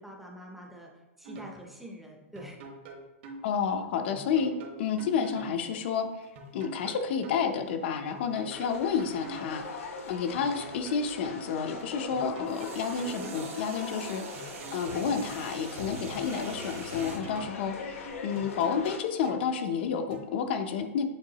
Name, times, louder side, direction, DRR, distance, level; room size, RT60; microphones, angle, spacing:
voice 1, 0.0-2.6, equal, ahead, 0 dB, 0.6 m, -46 dB
sound 1, 1.2-1.6 2.4-3.4 4.1-5.6 6.4-7.4 8.1-9.6 10.4-11.4 12.1-13.6 14.4-15.4 16.1-17.6 18.4-19.5 20.1-20.2, right 2 dB, 50° right, 1.1 m, -45 dB
voice 2, 3.4-6.1 6.5-14.4 14.7-21.0, left 6 dB, 50° left, 6 dB, 0.5 m, -30 dB
sound 2, 6.2-11.4 12.5-17.2, right 5 dB, 75° right, 1.2 m, -45 dB
sound 3, 8.5-19.0, left 4 dB, 75° left, 1.0 m, -42 dB
7.6 x 4.5 x 2.9 m, 1.1 s
supercardioid pair, 165°, 7 cm